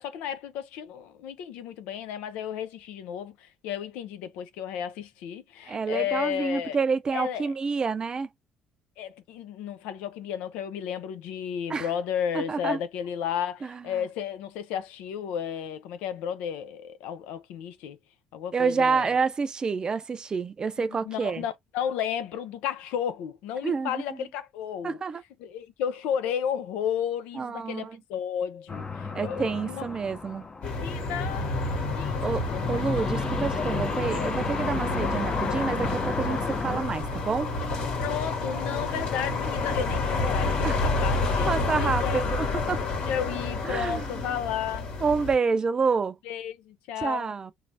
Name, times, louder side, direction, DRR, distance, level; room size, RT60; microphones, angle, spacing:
voice 1, 0.0-6.8 7.1-7.5 9.0-18.0 18.3-19.1 20.9-25.0 25.4-29.9 30.8-32.8 38.0-42.2 42.7-42.8 43.1-44.9 46.2-47.3, left 9 dB, 80° left, 0.5 m, -33 dB
voice 2, 5.7-8.3 11.7-11.9 12.3-12.8 13.6-13.8 18.5-21.4 23.6-24.0 24.8-25.2 27.4-28.0 29.1-30.5 32.0-37.5 40.6-40.8 41.5-42.8 43.6-44.1 45.0-46.2 47.0-47.5, right 5 dB, 35° right, 0.4 m, -28 dB
sound 1, 28.7-31.9 32.2-36.8, left 4 dB, 30° left, 0.7 m, -35 dB
sound 2, 30.6-45.4, left 3 dB, 65° left, 1.9 m, -29 dB
3.2 x 2.3 x 2.7 m
supercardioid pair, 70°, 2 cm